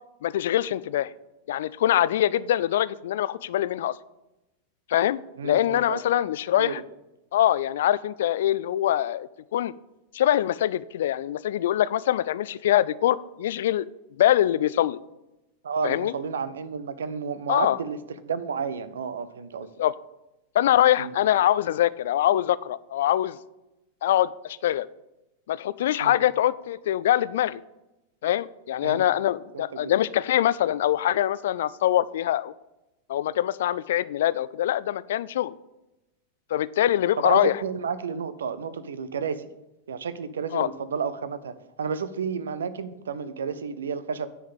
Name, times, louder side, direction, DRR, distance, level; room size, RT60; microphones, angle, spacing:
voice 1, 0.2-1.1 1.5-4.0 4.9-6.8 7.3-9.7 10.1-13.9 14.2-15.0 15.8-16.1 17.5-17.8 19.8-20.0 20.5-23.4 24.0-24.9 25.5-27.6 28.2-32.5 33.1-35.5 36.5-37.6 40.5-40.7, left 12 dB, 60° left, 18 dB, 0.3 m, -23 dB
voice 2, 5.4-6.0 6.6-6.8 15.6-18.0 18.2-19.7 21.0-21.1 26.0-26.2 28.8-29.0 29.5-29.9 37.2-39.5 39.9-44.3, right 6 dB, 65° right, 14 dB, 0.6 m, -31 dB
9.9 x 4.7 x 7.2 m, 0.95 s
figure-of-eight pair, 90°, 0 cm